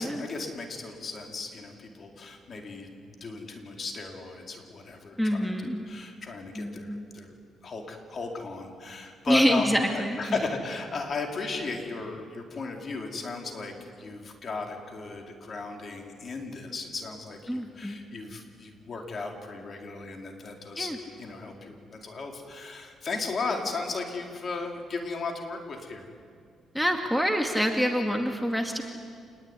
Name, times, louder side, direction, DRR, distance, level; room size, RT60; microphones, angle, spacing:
voice 1, 0.0-7.3 7.6-20.9 21.2-26.1, left 3 dB, 45° left, 2 dB, 4.5 m, -36 dB
voice 2, 5.2-5.8 6.6-7.1 9.3-10.4 17.5-18.0 20.8-21.0 26.7-28.8, equal, ahead, 3 dB, 2.3 m, -26 dB
27.5 x 20.5 x 9.9 m, 2.1 s
cardioid pair, 90°, 0 cm